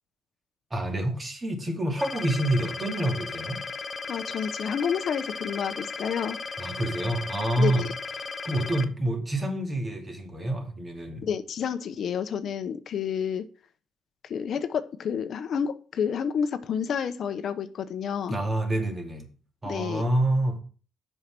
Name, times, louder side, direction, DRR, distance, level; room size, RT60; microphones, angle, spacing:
voice 1, 0.7-3.6 6.6-7.8 8.4-11.3 18.3-19.3 19.6-20.6, right 1 dB, 25° right, 2.5 m, -27 dB
sound 1, 2.0-8.8, left 4 dB, 35° left, 0.8 m, -36 dB
voice 2, 4.1-6.4 7.6-7.8 11.2-13.5 14.2-18.4 19.6-20.1, left 7 dB, 60° left, 0.8 m, -29 dB
7.5 x 5.7 x 5.9 m
cardioid pair, 90°, 0 cm